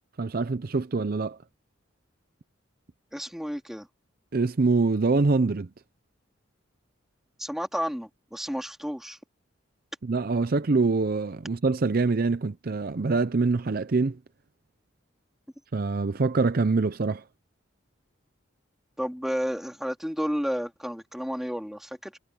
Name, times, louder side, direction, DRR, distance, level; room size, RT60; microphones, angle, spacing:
voice 1, 0.2-1.4 4.3-5.7 10.0-14.2 15.7-17.2, right 3 dB, 50° right, 0.5 m, -24 dB
voice 2, 3.1-3.9 7.4-9.2 19.0-22.2, equal, ahead, 3.5 m, -31 dB
head